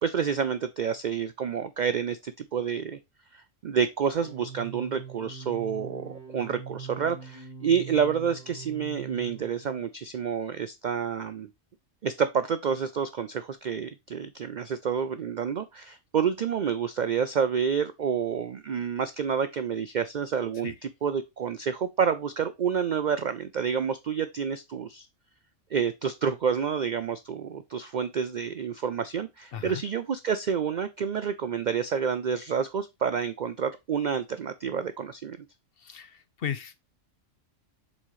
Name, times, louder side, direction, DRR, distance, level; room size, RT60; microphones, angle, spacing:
voice 1, 0.0-3.0 3.3-11.5 12.0-25.1 25.7-35.4, right 7 dB, 65° right, 0.4 m, -29 dB
sound 1, 4.1-9.8, right 6 dB, 35° left, 2.6 m, -42 dB
voice 2, 29.5-29.8 35.8-36.7, left 8 dB, 55° left, 0.8 m, -35 dB
7.3 x 4.3 x 3.1 m
omnidirectional pair, 1.3 m